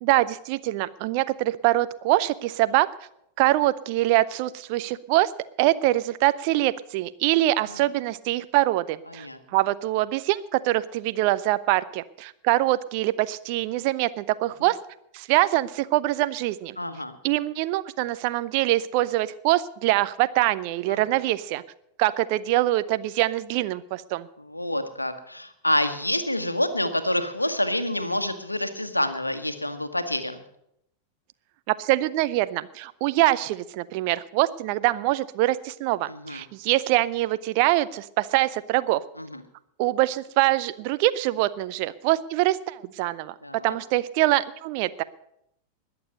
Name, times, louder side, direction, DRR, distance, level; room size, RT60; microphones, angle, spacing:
voice 1, 0.0-2.9 3.4-5.3 5.6-9.3 9.5-14.8 15.1-16.8 17.2-21.6 22.0-24.3 31.7-39.0 39.8-43.3 43.6-45.0, right 16 dB, 45° right, 15 dB, 0.6 m, -24 dB
voice 2, 16.8-17.1 20.9-21.0 24.5-30.4 36.1-36.4 39.2-39.4 43.4-43.6, left 1 dB, 85° left, 9 dB, 1.2 m, -27 dB
20.5 x 6.9 x 6.5 m, 0.76 s
figure-of-eight pair, 90°, 0 cm